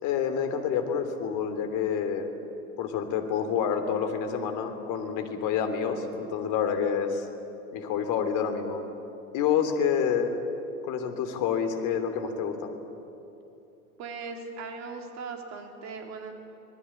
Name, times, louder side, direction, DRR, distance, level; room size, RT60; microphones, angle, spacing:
voice 1, 0.0-2.3 2.8-7.2 7.7-8.8 9.3-10.3 10.8-12.7, left 7 dB, 45° left, 7 dB, 3.1 m, -28 dB
voice 2, 14.0-16.3, right 4 dB, 40° right, 4 dB, 3.7 m, -39 dB
25.5 x 19.5 x 8.6 m, 2.8 s
figure-of-eight pair, 85°, 43 cm